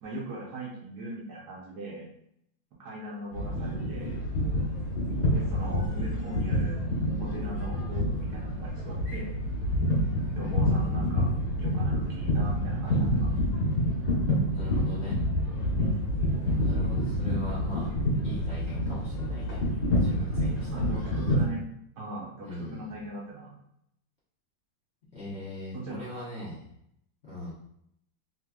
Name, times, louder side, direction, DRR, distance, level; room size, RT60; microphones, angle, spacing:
voice 1, 0.0-2.1 2.8-4.2 5.3-6.9 7.2-9.3 10.3-11.3 11.5-13.4 16.3-16.5 20.6-21.6 22.0-23.6 25.7-26.1 26.4-26.6, right 2 dB, 60° right, -4 dB, 1.3 m, -40 dB
sound 1, 3.3-21.4, left 1 dB, 65° left, 1.8 m, -28 dB
voice 2, 14.5-15.2 16.3-17.9 18.2-19.6 20.0-20.9 22.4-22.9 25.1-26.7 27.2-27.5, left 1 dB, 45° left, -9 dB, 1.0 m, -40 dB
3.9 x 3.1 x 2.3 m, 0.74 s
omnidirectional pair, 2.1 m